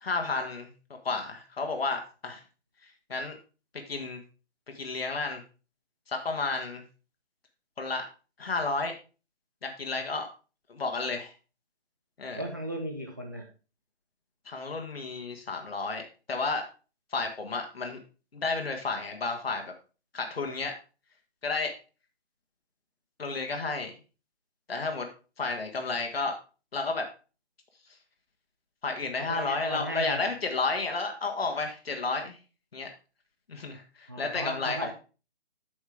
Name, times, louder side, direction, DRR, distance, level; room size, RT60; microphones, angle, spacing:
voice 1, 0.0-0.7 1.0-2.4 2.8-3.4 3.9-4.2 4.7-5.4 6.1-6.8 7.8-8.1 8.4-9.0 9.6-10.3 10.7-11.3 12.2-12.4 14.5-16.7 17.1-18.0 18.3-19.6 20.1-20.7 21.4-21.7 23.2-23.9 24.7-25.1 25.4-26.4 26.7-27.1 28.8-32.4 32.7-32.9 33.5-34.9, left 3 dB, 60° left, 4 dB, 1.6 m, -32 dB
voice 2, 12.3-13.5 29.2-30.3 34.1-34.9, equal, 20° right, 1 dB, 0.5 m, -36 dB
8.6 x 6.3 x 3.5 m, 0.34 s
figure-of-eight pair, 150°, 34 cm